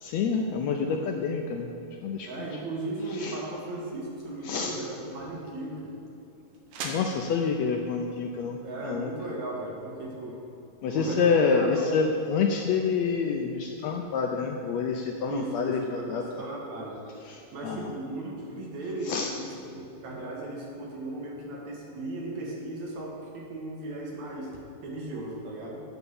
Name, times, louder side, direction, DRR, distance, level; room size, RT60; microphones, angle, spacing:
voice 1, 0.0-1.7 2.0-2.3 3.2-3.4 4.5-4.7 6.8-9.1 10.8-16.2 17.3-17.9 19.0-19.3, left 5 dB, 75° left, 2 dB, 1.6 m, -27 dB
voice 2, 2.3-5.9 8.6-10.4 10.9-11.9 15.3-17.0 17.5-25.8, right 2 dB, 65° right, -2 dB, 3.0 m, -36 dB
sound 1, 4.1-10.0, right 3 dB, 80° right, 2.8 m, -46 dB
9.9 x 7.9 x 7.0 m, 2.9 s
omnidirectional pair, 3.7 m